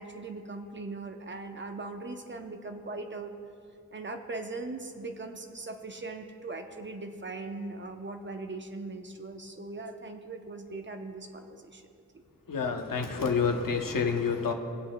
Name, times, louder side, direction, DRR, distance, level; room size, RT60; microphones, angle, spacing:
voice 1, 0.0-3.3 3.9-11.8, right 3 dB, 35° right, 5 dB, 0.7 m, -40 dB
voice 2, 12.5-14.5, left 5 dB, 80° left, 4 dB, 0.9 m, -28 dB
22.0 x 7.7 x 2.2 m, 2.5 s
wide cardioid pair, 85°, 33 cm